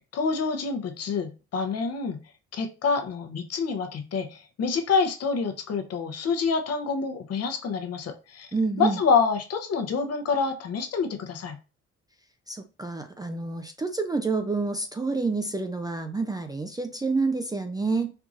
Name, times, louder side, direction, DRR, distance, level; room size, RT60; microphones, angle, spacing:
voice 1, 0.1-2.2 2.5-8.5 8.8-11.6, left 5 dB, 55° left, 0.8 m, -27 dB
voice 2, 8.5-9.0 12.5-18.1, right 3 dB, 15° right, 0.3 m, -28 dB
4.5 x 2.5 x 2.4 m
cardioid pair, 90°, 30 cm